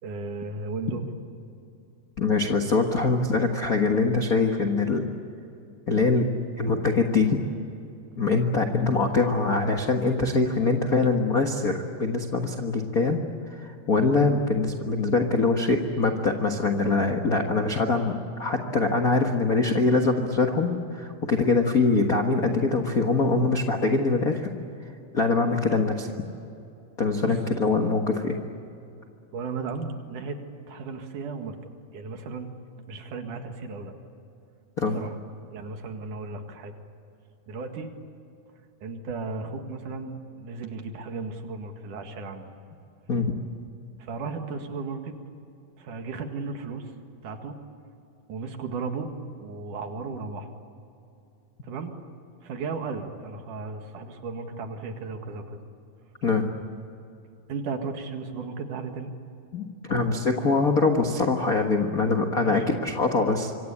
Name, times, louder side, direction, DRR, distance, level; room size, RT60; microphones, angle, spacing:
voice 1, 0.0-1.1 8.1-8.2 27.2-27.4 29.3-30.4 30.7-31.6 31.9-32.5 32.9-33.9 34.9-35.2 35.5-36.7 37.5-37.9 38.8-42.5 44.0-45.2 45.8-46.9 47.2-47.6 48.3-50.5 51.6-52.0 52.4-55.6 57.5-59.1 62.4-62.7, right 4 dB, 60° right, 5 dB, 3.2 m, -35 dB
voice 2, 2.2-5.1 5.9-6.3 6.6-7.4 8.2-13.2 13.5-24.5 25.1-26.1 27.0-28.4 34.8-35.0 43.1-43.3 56.2-56.5 59.5-63.5, left 3 dB, 80° left, 3 dB, 0.8 m, -23 dB
26.0 x 25.0 x 8.6 m, 2.7 s
omnidirectional pair, 4.2 m